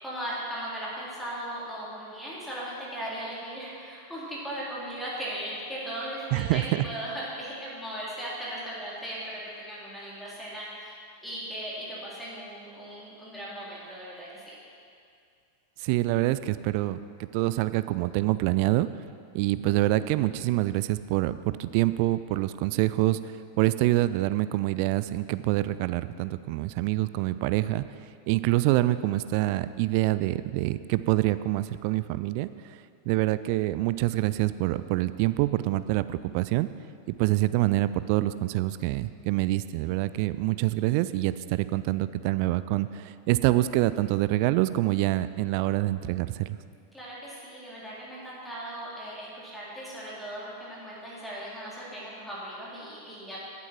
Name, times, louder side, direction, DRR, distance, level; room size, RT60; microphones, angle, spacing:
voice 1, 0.0-10.9 11.2-14.5 46.9-53.4, right 1 dB, 5° left, -7 dB, 3.6 m, -38 dB
voice 2, 6.3-6.8 15.8-18.9 19.3-27.8 28.3-36.7 37.2-46.6, right 17 dB, 45° right, 14 dB, 0.4 m, -26 dB
15.5 x 8.3 x 4.5 m, 2.3 s
figure-of-eight pair, 90°, 0 cm